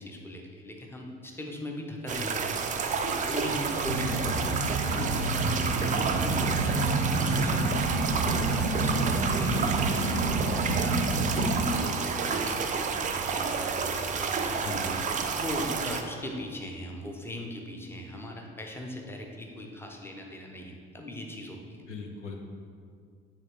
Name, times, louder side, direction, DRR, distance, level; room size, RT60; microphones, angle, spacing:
voice 1, 0.0-2.6 3.1-6.9 7.2-7.8 8.1-12.0 12.2-13.8 14.1-15.0 15.3-21.8, left 1 dB, 5° left, 1 dB, 0.8 m, -39 dB
sound 1, 2.1-16.0, right 5 dB, 20° right, 0.5 m, -30 dB
sound 2, 3.8-11.7, right 2 dB, 80° right, 0.7 m, -28 dB
voice 2, 14.6-14.9 21.9-22.4, left 4 dB, 85° left, 1 dB, 0.6 m, -40 dB
8.8 x 3.6 x 3.5 m, 2.2 s
figure-of-eight pair, 55°, 35 cm